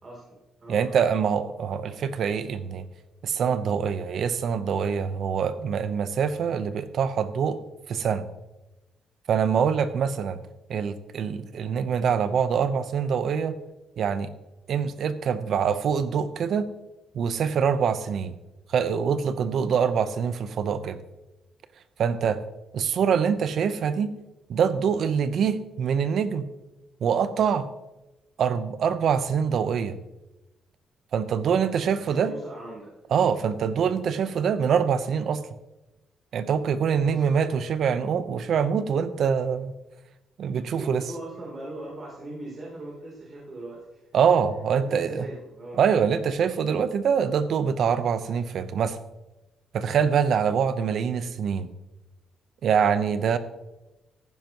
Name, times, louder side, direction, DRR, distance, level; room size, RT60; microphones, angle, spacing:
voice 1, 0.0-1.0 9.4-9.7 32.0-32.9 37.0-37.6 40.8-44.0 44.8-45.8, right 1 dB, 40° right, -4 dB, 3.4 m, -40 dB
voice 2, 0.7-2.9 3.2-7.6 7.9-8.3 9.3-10.4 10.7-13.5 14.0-14.3 14.7-16.7 17.1-18.3 18.7-21.0 22.0-22.4 22.7-24.1 24.5-26.5 27.0-27.7 28.4-30.0 31.1-32.3 33.1-35.4 36.3-39.7 40.4-41.0 44.1-45.2 45.7-49.0 49.7-51.7 52.6-53.4, right 7 dB, 65° right, 12 dB, 0.9 m, -24 dB
14.5 x 10.5 x 3.0 m, 0.99 s
cardioid pair, 90°, 0 cm